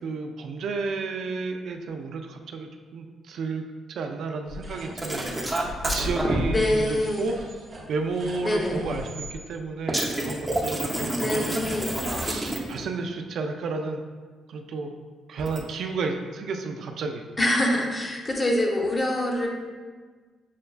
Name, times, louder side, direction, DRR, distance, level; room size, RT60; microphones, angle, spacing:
voice 1, 0.0-11.6 12.2-14.0 14.5-14.9 15.3-17.2, right 4 dB, 70° right, 4 dB, 0.3 m, -32 dB
sound 1, 4.5-9.4, left 1 dB, 50° right, 0.8 m, -37 dB
sound 2, 5.0-6.4 9.9-12.8 15.4-15.6, right 1 dB, 10° right, 0.6 m, -28 dB
voice 2, 6.5-7.3 8.4-8.9 11.2-12.0 17.4-19.5, left 1 dB, 25° left, 0 dB, 0.7 m, -25 dB
6.4 x 2.2 x 2.3 m, 1.5 s
cardioid pair, 90°, 0 cm